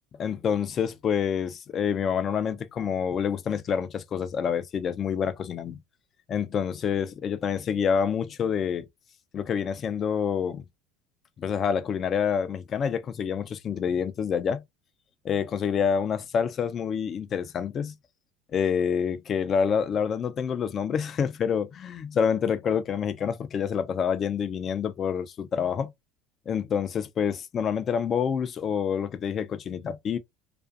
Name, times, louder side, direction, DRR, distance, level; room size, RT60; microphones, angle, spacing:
voice 1, 0.2-5.8 6.3-8.9 9.3-10.6 11.4-14.6 15.2-17.9 18.5-25.9 26.5-30.2, left 7 dB, 40° left, 0.4 m, -27 dB
2.4 x 2.4 x 2.4 m
supercardioid pair, 90°, 0 cm